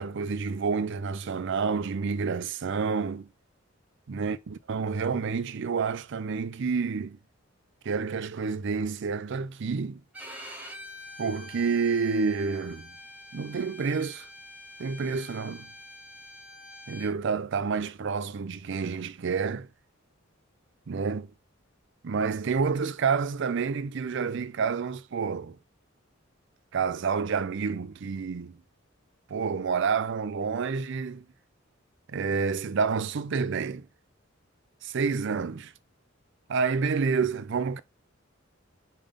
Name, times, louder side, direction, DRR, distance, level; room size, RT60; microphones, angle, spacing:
voice 1, 0.0-3.3 4.1-7.2 7.8-10.0 11.2-12.9 13.3-14.3 14.8-15.7 16.9-19.7 20.9-21.3 22.0-25.6 26.7-28.6 29.3-31.2 32.1-33.9 34.8-35.7 36.5-37.8, right 5 dB, 60° right, 0.5 m, -29 dB
Bowed string instrument, 10.1-17.1, left 1 dB, 10° right, 1.2 m, -46 dB
5.4 x 3.5 x 5.2 m
head